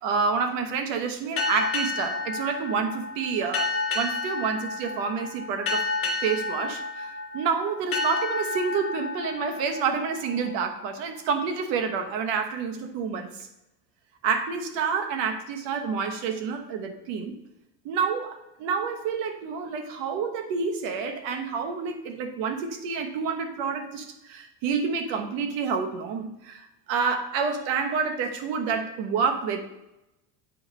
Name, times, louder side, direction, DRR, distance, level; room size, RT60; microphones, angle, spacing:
voice 1, 0.0-3.7 3.9-5.9 6.2-13.5 14.2-17.3 17.8-29.6, right 5 dB, 75° right, 5 dB, 1.2 m, -28 dB
sound 1, 1.4-10.6, left 3 dB, 30° left, 1.5 m, -31 dB
8.9 x 4.8 x 3.1 m, 0.89 s
cardioid pair, 140°, 45 cm